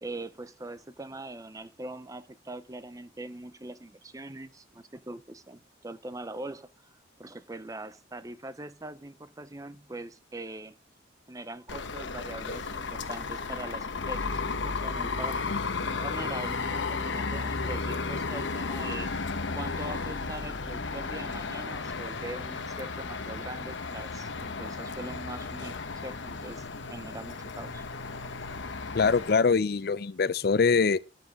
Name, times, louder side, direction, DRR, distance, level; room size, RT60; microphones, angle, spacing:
voice 1, 0.0-10.8 11.3-19.1 19.5-25.7 26.0-27.9, right 2 dB, 20° right, 0.5 m, -42 dB
sound 1, 11.7-29.3, left 4 dB, 75° left, 1.0 m, -34 dB
voice 2, 28.9-31.0, left 5 dB, 50° left, 0.5 m, -23 dB
12.5 x 9.4 x 3.5 m
head